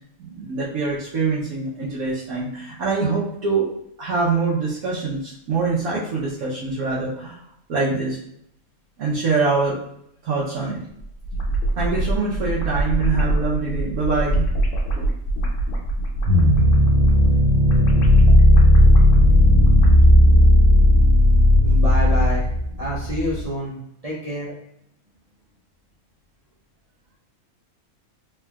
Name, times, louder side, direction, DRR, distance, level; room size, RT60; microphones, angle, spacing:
voice 1, 0.2-3.7 4.0-7.4 7.7-8.2 9.0-9.8 10.2-10.8 11.8-14.5 15.0-15.1, right 4 dB, 85° right, -7 dB, 1.2 m, -24 dB
sound 1, 11.0-20.2, right 1 dB, 70° left, 1.0 m, -24 dB
sound 2, 16.2-23.4, left 1 dB, 65° right, 1.2 m, -14 dB
voice 2, 21.6-22.4 22.8-23.8 24.0-24.5, equal, 50° right, -6 dB, 0.4 m, -27 dB
3.5 x 3.4 x 2.3 m, 0.73 s
omnidirectional pair, 1.5 m